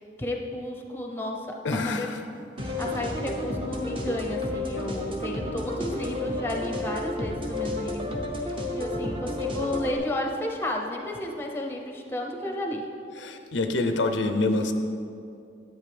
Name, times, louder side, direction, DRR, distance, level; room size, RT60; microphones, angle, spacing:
voice 1, 0.0-2.1 2.6-12.9, left 1 dB, 15° left, 1 dB, 0.7 m, -33 dB
voice 2, 1.6-2.2 13.2-14.7, left 2 dB, 90° left, 6 dB, 0.7 m, -26 dB
sound 1, 2.6-10.0, left 2 dB, 30° right, 0.9 m, -31 dB
10.5 x 9.0 x 3.4 m, 2.5 s
head